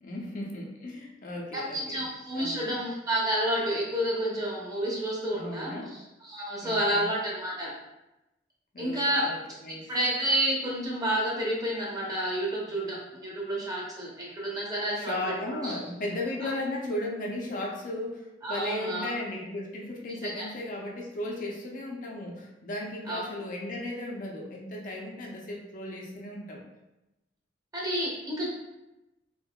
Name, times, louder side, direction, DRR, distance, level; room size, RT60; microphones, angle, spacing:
voice 1, 0.0-2.1 2.3-2.7 5.3-5.9 6.6-7.1 8.7-9.4 9.6-9.9 14.9-26.6, left 1 dB, 45° left, -1 dB, 0.5 m, -36 dB
voice 2, 1.5-7.7 8.8-9.3 9.9-15.2 15.6-15.8 16.4-16.5 18.4-19.1 20.2-20.5 23.1-23.2 27.7-28.5, right 1 dB, 20° right, -4 dB, 0.7 m, -30 dB
3.6 x 2.5 x 2.2 m, 0.95 s
head